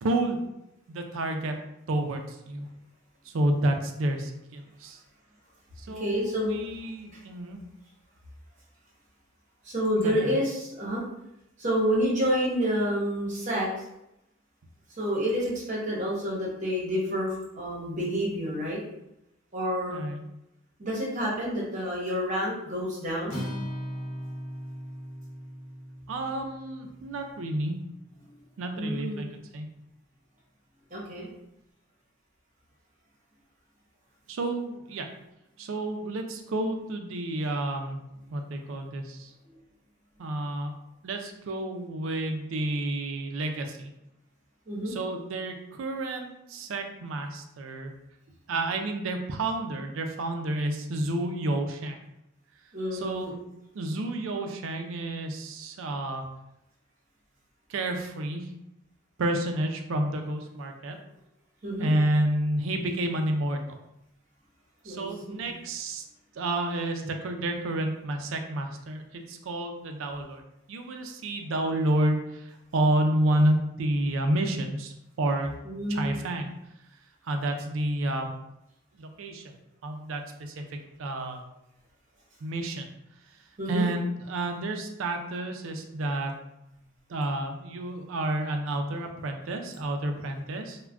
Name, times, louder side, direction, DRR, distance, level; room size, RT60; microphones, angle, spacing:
voice 1, 0.0-0.4 0.9-1.6 1.9-2.7 3.2-5.0 5.8-7.6 10.0-10.4 19.9-20.2 26.1-27.7 28.6-29.3 29.5-29.7 34.3-35.1 35.6-38.0 38.3-39.3 40.2-40.7 41.0-43.9 44.9-47.9 48.5-52.0 52.9-53.4 53.7-56.2 57.7-58.5 59.2-61.0 61.8-63.8 64.8-66.0 66.4-70.4 70.7-75.5 75.9-76.5 77.2-78.3 78.9-79.5 79.8-81.4 82.4-82.9 83.7-86.3 87.1-90.8, right 1 dB, 70° right, 5 dB, 0.4 m, -30 dB
voice 2, 5.9-6.6 9.6-11.0 11.6-13.8 15.0-18.8 19.5-20.0 20.8-23.4 28.8-29.2 30.9-31.3 44.7-44.9 52.7-53.4 61.6-61.9 64.8-65.5 75.6-76.2 83.6-83.8, equal, 35° right, -4 dB, 0.8 m, -29 dB
Acoustic guitar, 23.3-27.5, equal, 75° left, 0.7 m, -38 dB
2.4 x 2.1 x 3.3 m, 0.85 s
head